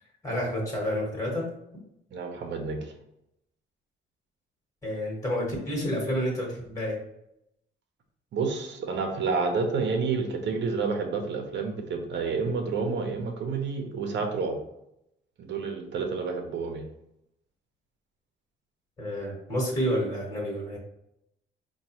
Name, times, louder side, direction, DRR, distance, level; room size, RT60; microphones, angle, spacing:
voice 1, 0.2-1.5 4.8-7.0 19.0-20.8, equal, 15° left, -3 dB, 1.3 m, -29 dB
voice 2, 2.1-2.9 8.3-14.6 15.4-16.9, right 4 dB, 65° right, 4 dB, 0.8 m, -29 dB
4.5 x 2.3 x 3.0 m, 0.81 s
cardioid pair, 90°, 20 cm